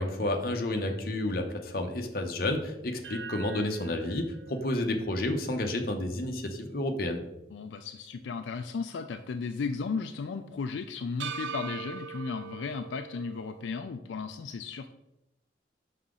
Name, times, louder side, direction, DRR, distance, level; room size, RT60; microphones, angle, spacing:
voice 1, 0.0-7.2, left 1 dB, 55° left, 3 dB, 0.8 m, -30 dB
sound 1, 3.0-7.3 7.7-7.8 11.2-13.8, right 6 dB, 85° right, 0.7 m, -43 dB
voice 2, 7.5-14.9, left 5 dB, 85° left, 7 dB, 0.4 m, -35 dB
5.8 x 5.6 x 3.8 m, 0.89 s
head